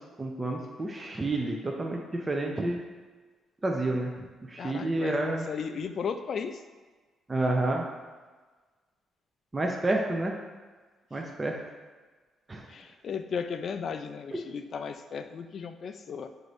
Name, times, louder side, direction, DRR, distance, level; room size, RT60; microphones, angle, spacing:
voice 1, 0.2-2.8 3.6-4.1 4.5-5.5 7.3-7.8 9.5-10.4 11.1-11.6 12.5-12.7 14.3-14.4, right 2 dB, 25° right, 0 dB, 0.5 m, -29 dB
voice 2, 4.6-5.2 5.5-6.6 12.7-16.3, left 6 dB, 55° left, 8 dB, 0.3 m, -35 dB
6.2 x 2.7 x 3.1 m, 1.4 s
cardioid pair, 90°, 0 cm